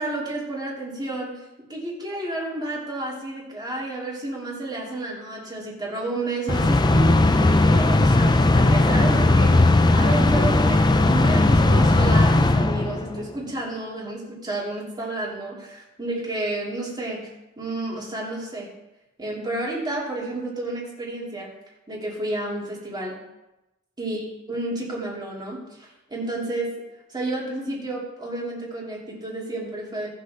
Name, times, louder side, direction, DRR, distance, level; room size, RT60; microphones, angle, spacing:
voice 1, 0.0-1.4 1.7-9.7 9.9-18.7 19.2-21.5 21.9-23.2 24.0-26.8 27.1-30.1, right 2 dB, 20° right, -4 dB, 2.9 m, -31 dB
sound 1, 6.5-13.3, left 2 dB, 20° left, 0.5 m, -17 dB
18.0 x 6.6 x 3.7 m, 0.98 s
head